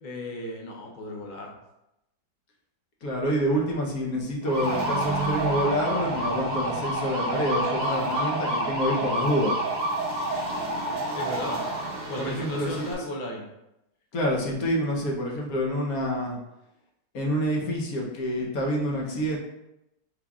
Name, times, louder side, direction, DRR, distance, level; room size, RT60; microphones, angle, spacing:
voice 1, 0.0-1.5 11.1-11.6 12.1-13.5 18.9-19.3, left 1 dB, 90° left, -1 dB, 0.4 m, -35 dB
voice 2, 3.0-9.6 12.2-12.9 14.1-16.4 17.1-19.4, equal, 60° left, -1 dB, 1.2 m, -27 dB
sound 1, 4.4-12.9, right 1 dB, 40° right, 0.7 m, -28 dB
5.9 x 3.3 x 2.3 m, 0.89 s
omnidirectional pair, 2.0 m